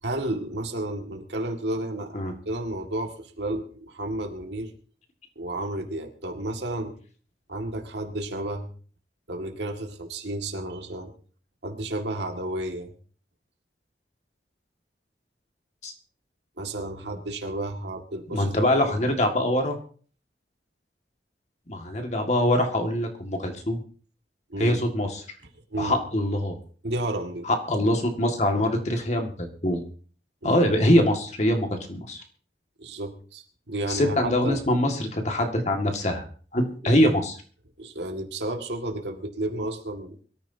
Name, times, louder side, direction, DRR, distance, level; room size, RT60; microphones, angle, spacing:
voice 1, 0.0-2.2 2.5-4.7 5.4-6.9 7.5-8.7 9.3-11.1 11.6-12.9 16.6-18.5 18.8-19.1 24.5-24.8 25.7-26.0 26.8-27.5 30.4-30.6 32.8-34.6 36.8-37.0 37.8-40.1, right 1 dB, 80° right, 4 dB, 2.1 m, -32 dB
voice 2, 18.3-19.8 21.7-23.8 24.6-25.2 25.8-26.5 27.4-29.8 30.4-32.2 33.9-36.2 36.5-37.4, left 1 dB, 40° left, 4 dB, 1.9 m, -23 dB
23.0 x 13.5 x 2.8 m, 0.42 s
head